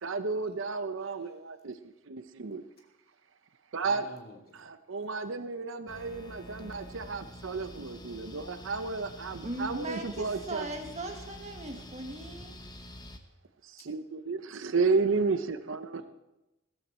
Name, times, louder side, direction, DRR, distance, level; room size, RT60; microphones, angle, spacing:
voice 1, 0.0-2.6 3.7-4.1 4.5-10.7 13.6-16.0, right 4 dB, 65° right, 11 dB, 0.7 m, -32 dB
voice 2, 1.0-1.3 3.8-4.6 16.0-16.1, left 1 dB, 45° left, 0 dB, 2.7 m, -49 dB
sound 1, 5.9-13.2, equal, 20° left, 1.0 m, -47 dB
voice 3, 9.4-12.5, right 2 dB, 35° right, 4 dB, 1.6 m, -39 dB
15.0 x 14.5 x 4.4 m, 0.99 s
head